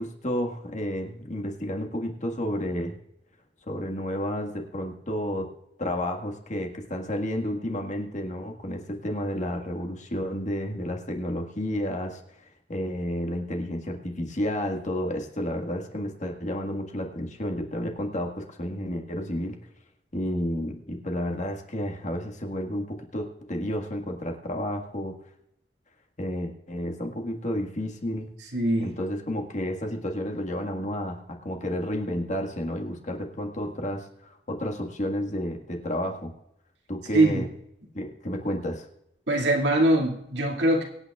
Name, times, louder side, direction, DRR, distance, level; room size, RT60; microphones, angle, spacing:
voice 1, 0.0-3.0 3.7-5.5 5.8-12.2 12.7-19.6 20.1-25.2 26.2-28.3 28.8-34.1 34.5-36.3 36.9-37.5 37.9-38.9, equal, 45° left, 2 dB, 1.7 m, -31 dB
voice 2, 28.5-28.9 37.1-37.4 39.3-40.8, right 1 dB, 85° right, 0 dB, 2.2 m, -22 dB
24.0 x 9.0 x 2.4 m, 0.79 s
head